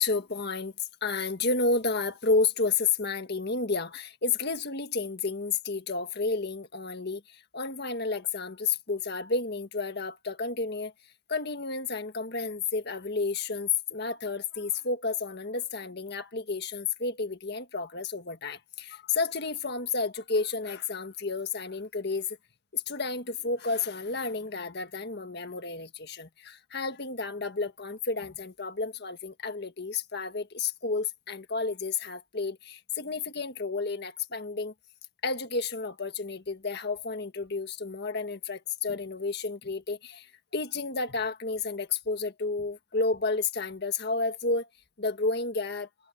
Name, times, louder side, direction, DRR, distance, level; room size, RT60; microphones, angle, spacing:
voice 1, 0.0-10.9 11.3-22.4 22.7-34.7 35.2-44.7 45.0-45.9, left 4 dB, 50° left, 1.7 m, -31 dB
head